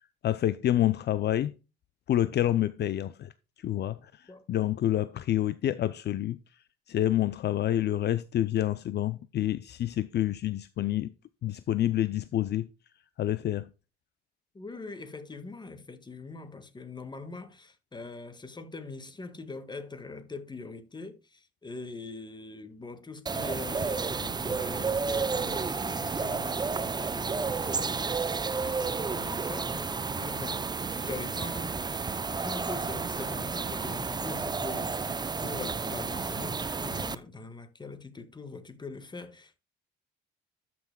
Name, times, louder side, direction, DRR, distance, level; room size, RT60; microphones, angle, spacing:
voice 1, 0.2-1.5 2.1-3.3 3.6-4.0 4.5-6.4 6.9-11.1 11.4-12.7 13.2-13.7, left 12 dB, 60° left, 0.5 m, -27 dB
voice 2, 14.5-31.8 32.4-39.6, left 3 dB, 20° left, 1.6 m, -42 dB
sound 1, 23.3-37.2, right 4 dB, 20° right, 0.5 m, -31 dB
13.5 x 6.0 x 2.2 m
cardioid pair, 90°, 20 cm